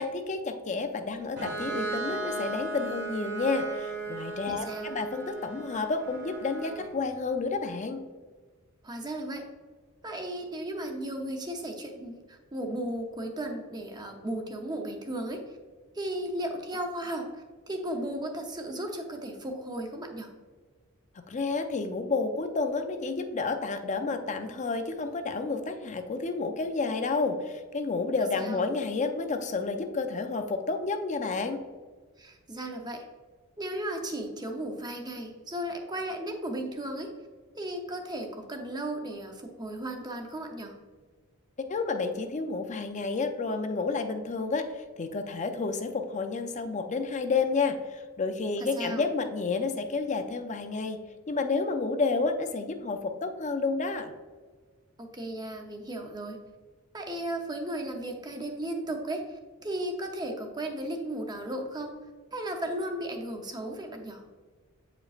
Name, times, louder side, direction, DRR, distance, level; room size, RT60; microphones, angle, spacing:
voice 1, 0.0-8.0 21.3-31.6 41.7-51.0 51.3-54.1, left 4 dB, 35° left, 7 dB, 0.5 m, -30 dB
Bowed string instrument, 1.4-7.0, right 2 dB, 50° right, 1.5 m, -36 dB
voice 2, 4.5-4.9 8.8-9.5 10.0-15.4 15.9-20.3 28.4-28.6 32.2-33.1 33.6-37.1 37.6-40.7 48.8-49.1 55.0-56.4 56.9-62.0 62.3-64.2, right 1 dB, 20° right, 3 dB, 0.7 m, -35 dB
8.3 x 5.0 x 2.4 m, 1.4 s
head